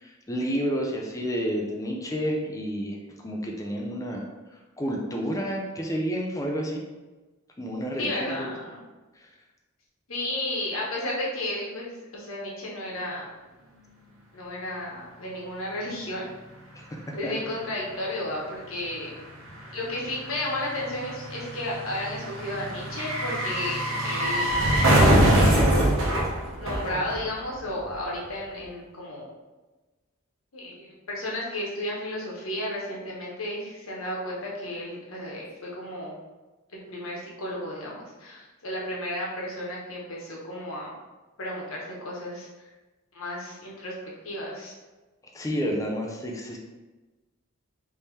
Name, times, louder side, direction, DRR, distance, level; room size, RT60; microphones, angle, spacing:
voice 1, 0.0-3.0 3.2-4.2 4.8-6.8 7.6-8.5 17.2-17.3 45.3-46.6, equal, 15° left, 0 dB, 0.5 m, -30 dB
voice 2, 8.0-8.8 10.1-13.3 14.3-16.3 17.1-19.1 19.7-24.5 25.0-25.6 26.6-29.3 30.5-36.1 36.9-40.9 41.4-42.5 43.1-43.9 44.2-44.8, left 1 dB, 85° left, -4 dB, 1.1 m, -33 dB
sound 1, 16.9-17.0 17.2-27.6 27.9-28.0, right 1 dB, 70° right, 0.8 m, -24 dB
3.6 x 2.8 x 3.2 m, 1.2 s
head